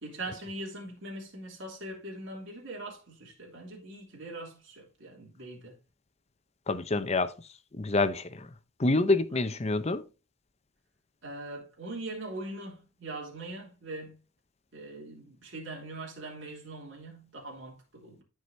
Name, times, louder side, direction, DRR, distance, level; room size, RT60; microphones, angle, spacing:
voice 1, 0.0-5.8 11.2-14.2 14.7-18.2, right 2 dB, 60° right, 3.1 m, -41 dB
voice 2, 6.7-7.3 7.7-8.5 8.8-10.0, left 2 dB, 30° left, 0.7 m, -27 dB
14.0 x 4.9 x 2.7 m
head